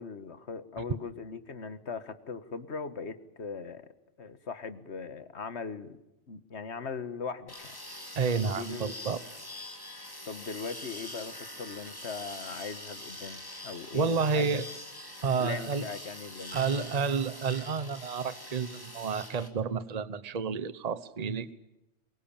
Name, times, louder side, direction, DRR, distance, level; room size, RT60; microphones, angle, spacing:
voice 1, 0.0-3.9 4.2-6.0 6.3-7.7 8.4-8.9 10.2-14.6 15.4-16.9, left 5 dB, 65° left, 12 dB, 1.7 m, -39 dB
sound 1, 7.5-19.5, left 1 dB, 20° left, 2.9 m, -44 dB
voice 2, 8.2-9.2 13.9-14.6 15.2-15.8 16.5-21.5, right 5 dB, 35° right, 15 dB, 1.0 m, -30 dB
23.5 x 22.0 x 8.9 m, 0.92 s
omnidirectional pair, 1.2 m